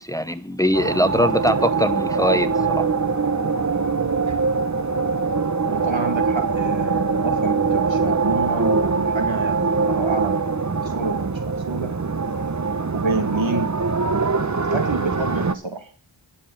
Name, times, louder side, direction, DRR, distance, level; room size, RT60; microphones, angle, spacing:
voice 1, 0.0-2.9, equal, 10° left, 0.8 m, -22 dB
sound 1, 0.7-15.6, right 4 dB, 40° right, 1.1 m, -23 dB
voice 2, 5.7-10.4 10.7-11.9 12.9-13.7 14.7-15.9, right 3 dB, 90° right, 2.7 m, -28 dB
11.0 x 7.1 x 8.7 m
wide cardioid pair, 50°, 45 cm